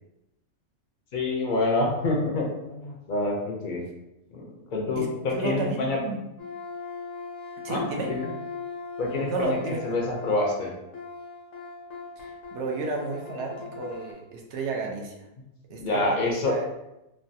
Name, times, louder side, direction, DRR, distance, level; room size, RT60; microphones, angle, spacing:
voice 1, 1.1-3.9 4.3-6.0 7.7-8.3 9.0-10.8 15.8-16.6, left 2 dB, 60° left, -1 dB, 0.5 m, -27 dB
voice 2, 5.3-6.2 7.6-8.1 9.3-9.8 12.2-15.2 15.7-16.7, right 3 dB, 70° right, 1 dB, 0.8 m, -32 dB
sound 1, 6.4-14.1, left 4 dB, 85° left, 1.1 m, -39 dB
3.2 x 2.2 x 2.6 m, 0.92 s
omnidirectional pair, 1.3 m